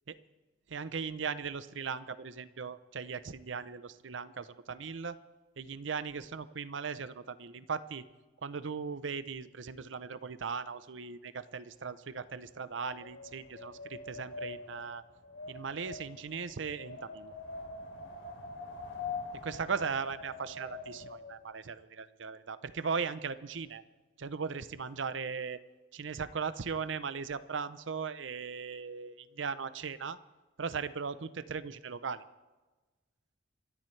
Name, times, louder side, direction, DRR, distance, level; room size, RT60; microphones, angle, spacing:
voice 1, 0.7-5.2 5.6-8.0 8.4-15.0 15.5-17.3 19.4-23.8 24.2-25.6 25.9-30.2 30.6-32.2, right 5 dB, 75° right, 14 dB, 0.7 m, -38 dB
Wind, 12.2-21.4, left 3 dB, 85° left, 3.1 m, -44 dB
27.5 x 13.5 x 3.3 m, 1.2 s
head